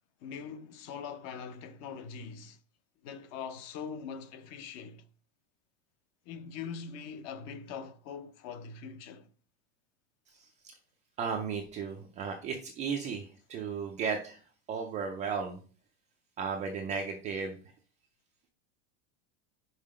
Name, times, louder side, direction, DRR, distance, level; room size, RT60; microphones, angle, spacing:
voice 1, 0.2-2.6 3.0-5.0 6.3-9.3, left 6 dB, 35° left, 0.6 m, -42 dB
voice 2, 10.3-10.8 11.2-15.6 16.4-17.7, right 5 dB, 20° right, 0.3 m, -35 dB
5.6 x 4.8 x 4.8 m
supercardioid pair, 170°, 42 cm